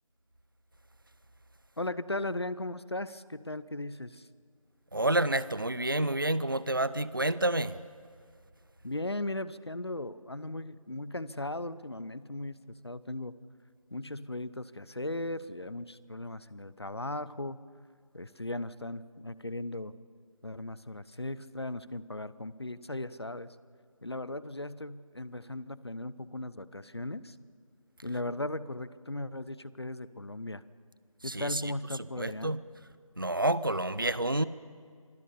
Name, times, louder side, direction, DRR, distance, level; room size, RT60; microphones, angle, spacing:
voice 1, 1.8-4.3 8.8-12.6 12.8-13.3 13.9-17.6 18.1-19.9 20.4-23.6 24.0-27.4 28.0-30.6 31.2-32.5, left 2 dB, 45° left, 17 dB, 0.8 m, -37 dB
voice 2, 4.9-7.8 31.2-31.6 32.2-32.6 33.2-34.4, right 1 dB, 40° right, 17 dB, 0.6 m, -29 dB
26.5 x 19.0 x 7.0 m, 2.1 s
figure-of-eight pair, 170°, 18 cm